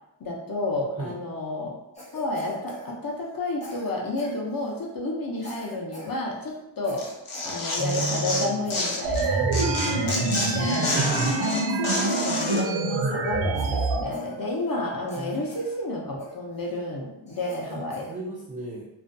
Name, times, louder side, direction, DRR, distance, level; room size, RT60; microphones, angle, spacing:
voice 1, 0.2-1.7 2.1-10.9 11.4-18.1, left 2 dB, 45° left, -2 dB, 0.6 m, -31 dB
Cough, 1.9-3.4 3.6-4.9 5.4-6.2 6.4-6.6 6.8-8.4 8.6-9.0 9.2-9.9 10.4-11.6 12.0-13.1 13.5-14.8 15.1-15.8 16.2-16.7 17.3-18.2, left 1 dB, 15° left, 0.8 m, -44 dB
Tearing, 7.0-9.2 9.5-12.6, left 2 dB, 80° left, 0.7 m, -29 dB
voice 2, 7.8-8.7 10.9-11.4 15.2-15.5 17.7-18.9, right 3 dB, 20° right, -5 dB, 0.3 m, -34 dB
sound 1, 9.0-14.0, right 3 dB, 70° right, 0.5 m, -25 dB
2.4 x 2.2 x 2.5 m, 0.90 s
wide cardioid pair, 90°, 49 cm